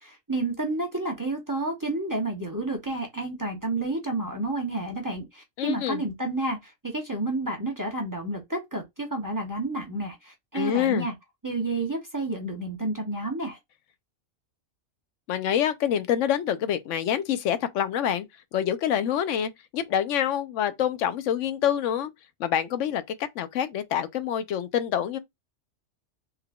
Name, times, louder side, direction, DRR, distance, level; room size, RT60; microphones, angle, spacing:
voice 1, 0.0-11.1 11.4-13.6, right 2 dB, 20° right, 0.7 m, -30 dB
voice 2, 5.6-6.0 10.5-11.1 15.3-18.3 18.5-22.1 22.4-25.2, left 9 dB, 85° left, 0.9 m, -26 dB
3.7 x 3.5 x 2.2 m
omnidirectional pair, 1.2 m